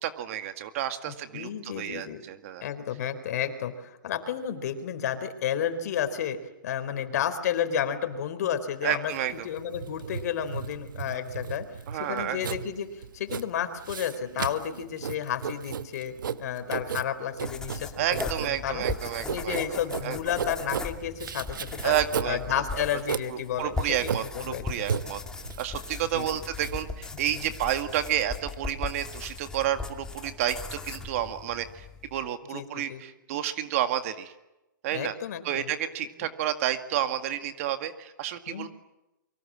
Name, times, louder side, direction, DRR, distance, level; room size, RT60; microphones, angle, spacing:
voice 1, 0.0-2.6 8.8-9.5 11.1-11.2 11.9-12.6 18.0-20.2 21.8-22.4 22.7-22.8 23.3-25.2 25.6-31.9 32.1-34.3 34.8-35.1 35.4-38.7, right 11 dB, 40° right, 9 dB, 2.0 m, -30 dB
voice 2, 1.1-2.2 2.6-9.1 9.4-18.1 18.4-18.8 19.3-22.0 22.2-24.7 26.1-26.3 27.3-27.5 32.5-33.0 34.9-35.7 38.5-38.7, left 9 dB, 50° left, 10 dB, 4.1 m, -32 dB
Writing, 9.1-28.2, right 7 dB, 75° right, 1.5 m, -35 dB
sound 1, 17.4-32.3, left 4 dB, 5° left, 2.3 m, -38 dB
30.0 x 24.0 x 7.6 m, 0.96 s
hypercardioid pair, 155°, 11 cm